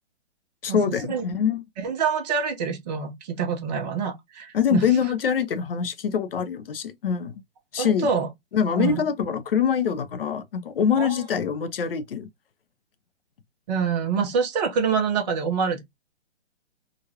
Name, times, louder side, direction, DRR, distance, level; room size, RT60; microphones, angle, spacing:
voice 1, 0.6-1.6 4.5-7.4 7.7-8.1 8.5-12.3, left 7 dB, 55° left, 0.7 m, -24 dB
voice 2, 1.8-4.8 7.8-8.3 8.8-9.0 11.0-11.2 13.7-15.8, right 6 dB, 35° right, 1.1 m, -26 dB
3.9 x 2.4 x 2.8 m
figure-of-eight pair, 125°, 34 cm